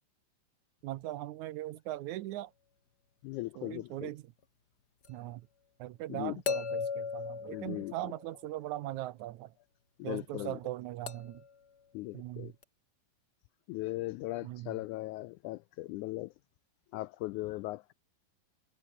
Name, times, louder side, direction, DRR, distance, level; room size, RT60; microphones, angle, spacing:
voice 1, 0.8-2.5 3.6-4.3 5.1-5.5 5.8-9.5 10.0-11.4 12.1-12.5 14.4-14.8, right 15 dB, 75° right, 1.9 m, -40 dB
voice 2, 3.2-4.1 6.1-6.3 7.5-7.9 10.0-10.6 11.9-12.5 13.7-16.3 16.9-17.9, left 19 dB, 80° left, 1.8 m, -38 dB
sound 1, 5.0-5.1 6.5-8.5 11.1-11.5 12.6-12.7, left 6 dB, 35° left, 2.0 m, -37 dB
omnidirectional pair, 3.8 m